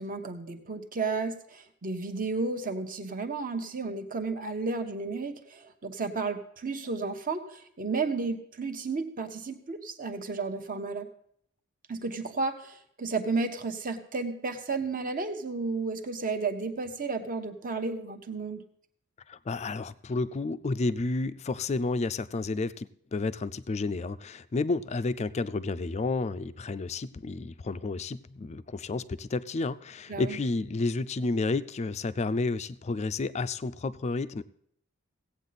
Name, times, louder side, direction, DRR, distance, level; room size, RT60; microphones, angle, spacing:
voice 1, 0.0-11.1 11.9-18.6 30.1-30.4, right 4 dB, 40° right, 0.9 m, -33 dB
voice 2, 19.3-34.4, left 3 dB, 30° left, 0.4 m, -31 dB
16.0 x 8.5 x 4.1 m
head